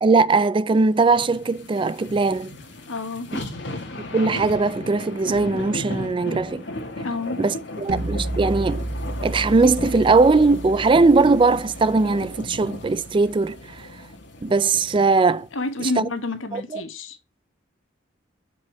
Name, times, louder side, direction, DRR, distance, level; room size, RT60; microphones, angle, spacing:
voice 1, 0.0-2.5 4.1-6.6 7.4-8.9 9.2-13.9 14.4-15.5 16.0-16.1 16.5-16.8, right 3 dB, 25° right, 0.3 m, -19 dB
sound 1, 1.0-15.5 15.9-16.0, left 1 dB, 60° left, 1.7 m, -36 dB
voice 2, 2.9-3.3 7.0-7.4 15.5-17.2, left 3 dB, 85° left, 1.3 m, -29 dB
sound 2, 7.9-13.9, right 2 dB, 55° right, 0.9 m, -33 dB
7.1 x 5.4 x 3.3 m
head